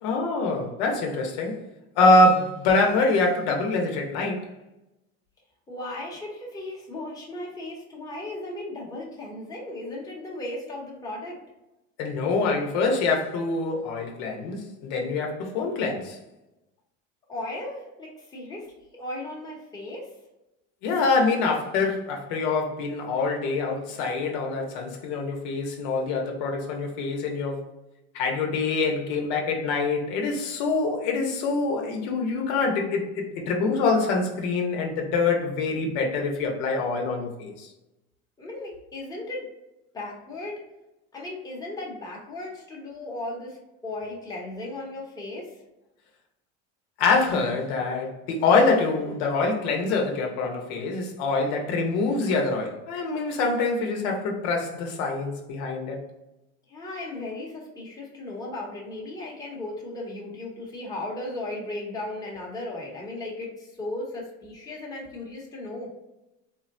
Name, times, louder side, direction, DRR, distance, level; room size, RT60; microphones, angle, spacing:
voice 1, 0.0-1.6 2.0-4.5 12.0-16.2 20.8-27.6 28.1-37.7 47.0-56.0, left 3 dB, 75° left, 0.8 m, -25 dB
voice 2, 5.7-11.4 17.3-20.1 38.4-39.5 39.9-40.6 41.1-43.6 43.8-45.6 56.7-65.9, left 2 dB, 10° left, 0.9 m, -36 dB
3.7 x 2.1 x 2.5 m
cardioid pair, 130°, 34 cm